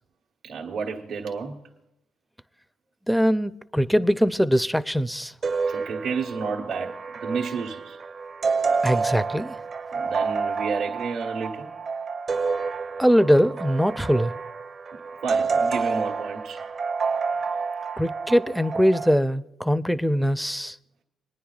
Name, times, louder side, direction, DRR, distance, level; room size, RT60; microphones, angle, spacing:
voice 1, 0.4-1.6 5.7-8.0 9.9-11.7 14.9-16.6, right 5 dB, 75° right, 1.2 m, -31 dB
voice 2, 3.1-5.3 8.8-9.5 13.0-14.3 18.0-20.8, equal, ahead, 0.4 m, -22 dB
sound 1, 5.4-19.1, right 4 dB, 45° right, 0.8 m, -29 dB
27.5 x 9.8 x 2.4 m
cardioid pair, 90°, 0 cm